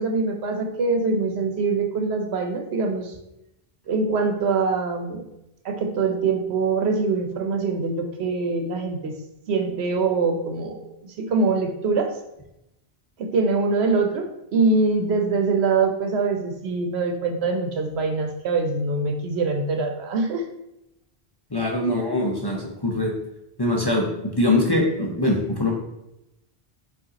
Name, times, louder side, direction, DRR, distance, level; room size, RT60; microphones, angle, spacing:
voice 1, 0.0-3.1 3.9-5.2 5.6-9.1 9.5-12.1 13.2-20.4, right 4 dB, 85° right, 4 dB, 0.9 m, -24 dB
voice 2, 21.5-23.1 23.6-25.7, left 1 dB, 30° left, -1 dB, 0.5 m, -23 dB
5.1 x 2.5 x 3.9 m, 0.87 s
omnidirectional pair, 1.1 m